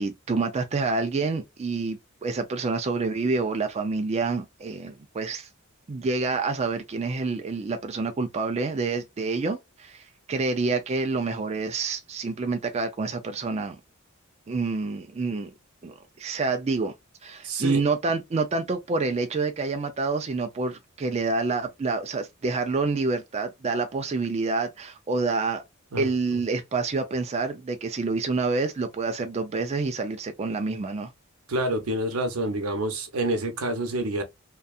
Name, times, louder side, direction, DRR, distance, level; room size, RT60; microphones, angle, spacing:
voice 1, 0.0-5.5 5.9-13.8 14.5-15.5 15.8-16.9 17.2-25.6 26.0-31.1, right 3 dB, 30° right, 0.4 m, -28 dB
voice 2, 17.4-17.8 25.9-26.4 31.5-34.2, right 1 dB, 85° right, 0.7 m, -28 dB
2.6 x 2.3 x 2.3 m
head